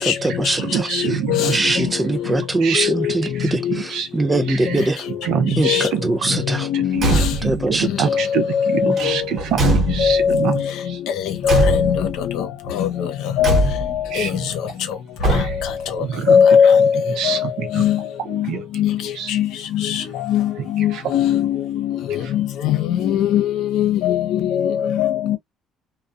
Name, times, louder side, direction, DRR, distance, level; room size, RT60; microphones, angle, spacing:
voice 1, 0.0-5.1 5.6-6.7 7.1-8.1, right 2 dB, 15° right, 0.4 m, -23 dB
voice 2, 0.6-1.6 2.1-2.2 2.6-4.1 4.5-4.8 5.2-6.3 6.7-11.0 14.1-14.5 15.3-15.6 16.0-17.9 18.5-18.7 19.1-19.3 20.6-21.0 22.2-22.3, right 8 dB, 70° right, 0.7 m, -26 dB
voice 3, 6.7-7.1 9.6-9.7 10.0-10.2 11.5-12.0 12.8-12.9 13.4-13.6 16.3-16.9 17.8-17.9 18.3-18.4 18.8-18.9 19.4-19.5 20.3-20.4 20.8-21.6 23.0-23.4 23.7-24.2 25.0-25.1, left 8 dB, 70° left, 0.8 m, -16 dB
Car / Truck / Slam, 6.9-7.7 8.9-10.4 11.4-12.2 13.4-14.1 15.2-15.9, right 2 dB, 40° right, 1.2 m, -21 dB
2.3 x 2.3 x 2.5 m
cardioid pair, 140°, 0 cm